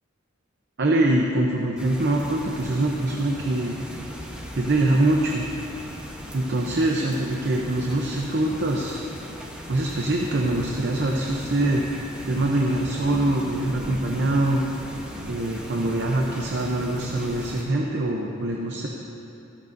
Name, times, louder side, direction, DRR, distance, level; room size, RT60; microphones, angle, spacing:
voice 1, 0.8-3.8 4.5-5.5 6.3-9.0 9.7-11.8 12.2-14.6 15.2-18.9, right 1 dB, 55° right, 0 dB, 0.7 m, -24 dB
sound 1, 1.8-17.6, equal, 5° right, 1.0 m, -38 dB
13.5 x 13.5 x 2.7 m, 3.0 s
head